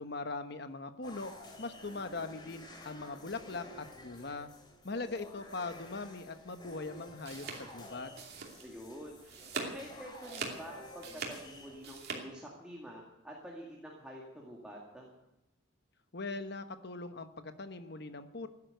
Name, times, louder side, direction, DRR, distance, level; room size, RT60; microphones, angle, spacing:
voice 1, 0.0-1.3 1.6-4.5 4.8-8.1 16.1-18.5, left 3 dB, 55° left, 9 dB, 1.1 m, -41 dB
sound 1, 1.0-12.0, left 1 dB, 25° left, 3.0 m, -52 dB
sound 2, 7.0-8.9 9.2-9.8 10.1-12.2, right 4 dB, 55° right, 2.7 m, -42 dB
voice 2, 8.6-15.1, equal, 5° right, -2 dB, 2.2 m, -48 dB
15.5 x 11.0 x 8.0 m, 0.95 s
head